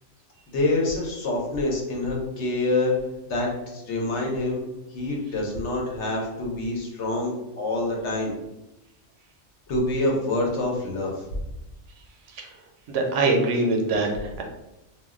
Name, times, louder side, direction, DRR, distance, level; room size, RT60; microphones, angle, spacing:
voice 1, 0.5-3.0 3.3-4.6 4.9-8.3 9.7-11.1, left 2 dB, 75° left, -1 dB, 1.0 m, -26 dB
voice 2, 12.9-14.4, right 2 dB, 80° right, 2 dB, 1.0 m, -23 dB
2.4 x 2.1 x 3.5 m, 0.94 s
omnidirectional pair, 1.2 m